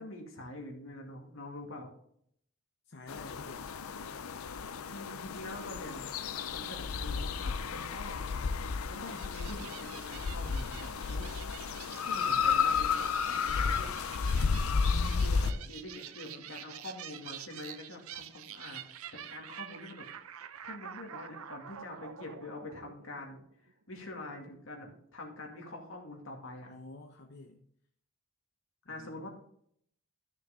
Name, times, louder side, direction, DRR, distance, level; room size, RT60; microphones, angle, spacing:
voice 1, 0.0-1.9 4.9-8.2 8.9-11.3 12.1-13.1 13.5-14.3 15.2-18.8 19.1-23.4 23.9-26.7 28.9-29.3, left 1 dB, 70° left, 1 dB, 2.3 m, -45 dB
voice 2, 2.9-3.7 14.7-15.7 16.3-16.7 26.6-27.6 28.9-29.3, left 2 dB, 55° left, 3 dB, 0.8 m, -48 dB
sound 1, 3.1-15.5, left 5 dB, 90° left, 0.5 m, -32 dB
sound 2, 9.1-23.7, right 10 dB, 90° right, 0.6 m, -48 dB
13.0 x 6.5 x 3.6 m, 0.67 s
head